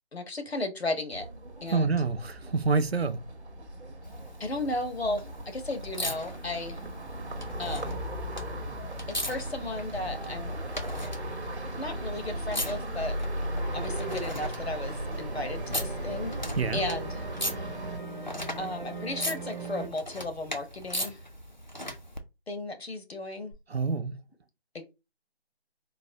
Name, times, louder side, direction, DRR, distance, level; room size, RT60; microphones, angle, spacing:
voice 1, 0.1-1.3 1.6-2.0 4.4-6.8 7.6-8.0 9.1-10.5 11.8-13.2 13.4-16.4 16.7-17.2 17.5-17.7 18.6-21.2 22.5-23.5 24.7-24.9, left 2 dB, 70° left, 1.0 m, -35 dB
sound 1, 1.1-18.0, right 1 dB, 90° right, 1.1 m, -37 dB
voice 2, 1.7-3.2 16.6-16.8 23.7-24.1, right 4 dB, 70° right, 0.6 m, -27 dB
sound 2, 4.0-22.2 23.5-23.6, equal, 45° left, 0.4 m, -39 dB
sound 3, 13.6-19.9, right 3 dB, 45° right, 0.9 m, -40 dB
3.9 x 2.2 x 2.7 m
figure-of-eight pair, 180°, 33 cm